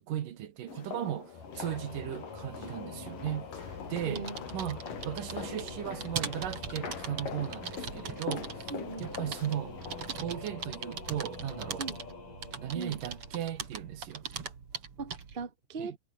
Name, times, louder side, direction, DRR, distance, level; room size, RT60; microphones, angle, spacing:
voice 1, 0.0-8.7 9.0-9.8 10.2-11.9 12.6-14.2 15.8-16.0, right 11 dB, 75° right, 3.2 m, -37 dB
sound 1, 0.7-10.2, left 7 dB, 90° left, 4.7 m, -44 dB
Singing / Musical instrument, 1.3-13.9, left 4 dB, 70° left, 7.8 m, -46 dB
voice 2, 2.6-3.4 4.0-4.4 8.7-9.1 11.8-12.0 12.7-13.0 15.0-16.0, right 4 dB, 20° right, 1.7 m, -40 dB
sound 2, 3.9-15.4, right 6 dB, 45° right, 3.3 m, -41 dB
omnidirectional pair, 3.8 m